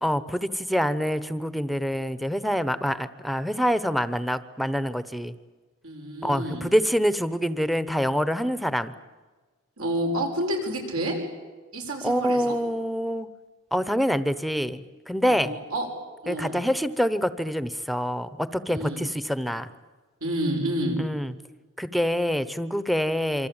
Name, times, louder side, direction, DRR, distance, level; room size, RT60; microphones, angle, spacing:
voice 1, 0.0-5.3 6.2-8.9 12.0-13.3 13.7-15.6 16.3-19.7 21.0-21.3 21.8-23.5, equal, ahead, 14 dB, 0.9 m, -26 dB
voice 2, 5.8-6.6 9.8-11.1 11.7-12.6 15.2-15.9 16.2-16.6 18.7-19.0 20.2-21.0, right 1 dB, 80° right, 1 dB, 6.8 m, -29 dB
26.5 x 24.5 x 8.9 m, 1.3 s
head